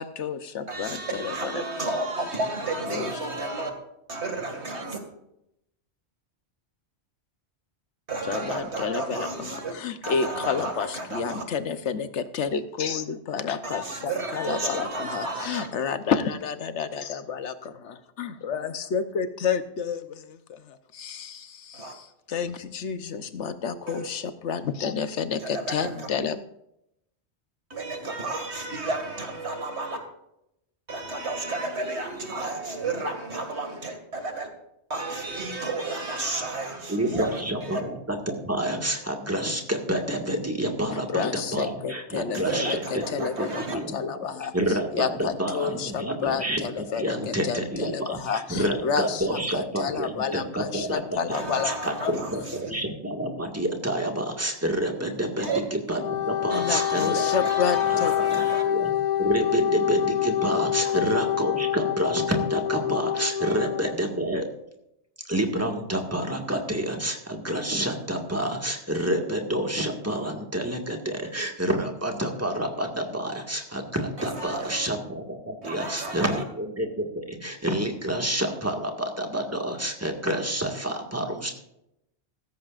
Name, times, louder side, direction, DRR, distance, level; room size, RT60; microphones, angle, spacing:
voice 1, 0.0-1.6 2.9-3.1 8.3-26.4 40.9-42.8 43.1-52.1 56.5-58.1, left 6 dB, 90° left, 1.2 m, -30 dB
voice 2, 0.7-3.7 4.1-5.0 8.1-9.7 10.0-11.4 13.6-15.7 21.7-21.9 23.9-24.1 25.4-26.1 27.7-30.0 30.9-34.5 34.9-37.8 42.3-43.8 51.3-52.7 55.4-55.6 56.5-58.6 60.8-61.0 63.4-63.6 74.2-74.9 75.6-76.4, right 2 dB, 75° right, 2.5 m, -32 dB
voice 3, 36.9-44.3 44.5-57.2 57.9-58.9 59.2-64.5 65.3-81.5, right 1 dB, 15° right, 1.8 m, -28 dB
Wind instrument woodwind instrument, 55.9-63.9, left 11 dB, 55° left, 0.5 m, -26 dB
16.0 x 14.5 x 2.5 m
omnidirectional pair, 1.2 m